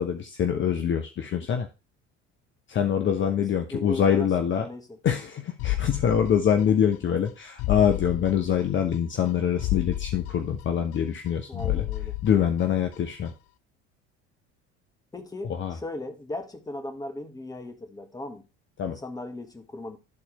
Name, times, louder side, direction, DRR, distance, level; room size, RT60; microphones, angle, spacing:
voice 1, 0.0-1.7 2.7-4.7 5.0-11.9 12.2-13.3 15.5-15.7 18.8-19.0, left 8 dB, 35° left, 0.9 m, -25 dB
voice 2, 3.7-4.3 4.6-5.0 11.5-12.2 15.1-18.4 18.8-20.0, left 2 dB, 10° left, 1.3 m, -37 dB
sound 1, 5.6-7.0 7.3-7.4 7.6-9.0 9.3-9.4 9.6-11.3 11.6-13.0 13.3-13.4, left 17 dB, 50° left, 0.5 m, -31 dB
11.0 x 4.3 x 4.2 m
figure-of-eight pair, 65°, 35 cm